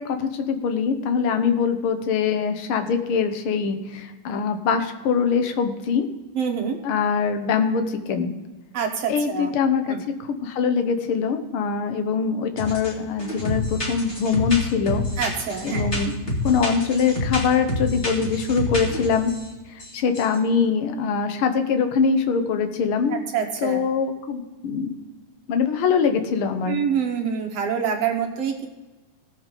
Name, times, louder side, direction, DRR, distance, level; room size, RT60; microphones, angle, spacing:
voice 1, 0.0-6.1 6.8-8.3 9.1-15.0 15.6-19.3 19.9-23.2 23.6-25.0 25.5-26.8, left 6 dB, 65° left, 7 dB, 1.3 m, -23 dB
voice 2, 6.4-6.8 8.7-9.5 9.9-10.0 15.2-15.9 23.1-23.9 26.6-28.7, right 7 dB, 65° right, 3 dB, 1.7 m, -26 dB
sound 1, 12.6-12.9 13.2-19.4 19.8-19.9 20.1-20.3, left 2 dB, 25° left, 2.0 m, -28 dB
17.5 x 7.0 x 3.8 m, 1.2 s
omnidirectional pair, 3.6 m